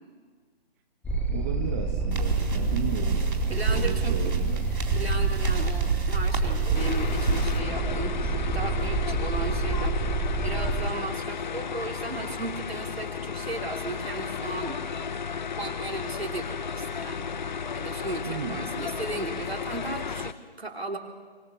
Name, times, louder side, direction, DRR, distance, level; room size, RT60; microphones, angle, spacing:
sound 1, 1.0-10.9, right 3 dB, 5° left, 1.5 m, -27 dB
voice 1, 1.3-4.7 18.3-18.7, right 7 dB, 15° right, 5 dB, 0.9 m, -35 dB
sound 2, 2.1-7.6, right 4 dB, 55° right, 4.2 m, -30 dB
voice 2, 3.5-4.1 4.9-14.7 15.6-17.2 17.7-21.0, right 3 dB, 75° right, 1 dB, 3.6 m, -36 dB
sound 3, 6.7-20.3, left 6 dB, 45° left, 0.8 m, -33 dB
25.0 x 19.0 x 7.1 m, 1.5 s
figure-of-eight pair, 145°, 31 cm